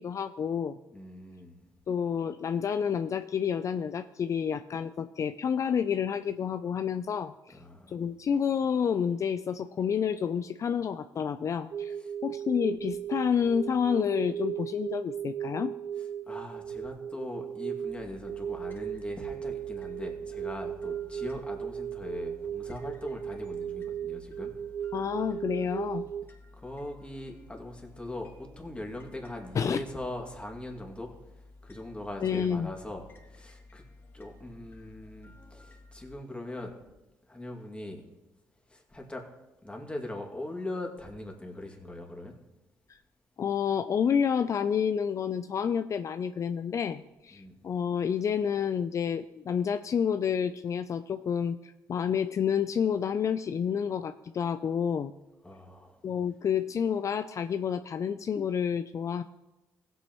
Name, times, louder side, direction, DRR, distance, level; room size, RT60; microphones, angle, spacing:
voice 1, 0.0-0.8 1.9-7.6 7.9-12.0 12.2-15.7 24.9-26.1 29.6-29.8 32.2-32.7 42.9-43.0 43.4-55.1 56.0-59.2, left 7 dB, 50° left, 11 dB, 0.4 m, -29 dB
voice 2, 0.9-1.6 7.5-8.0 12.0-12.1 16.0-24.5 26.6-33.8 34.1-36.7 37.3-38.0 38.7-39.2 39.6-42.4 47.3-47.7 55.4-56.0, left 1 dB, 15° left, 1 dB, 2.2 m, -41 dB
sound 1, 11.7-26.2, right 9 dB, 60° right, 0.5 m, -36 dB
sound 2, 17.9-36.1, left 2 dB, 35° left, 2.4 m, -54 dB
16.0 x 8.2 x 3.0 m, 1.0 s
supercardioid pair, 65°, 7 cm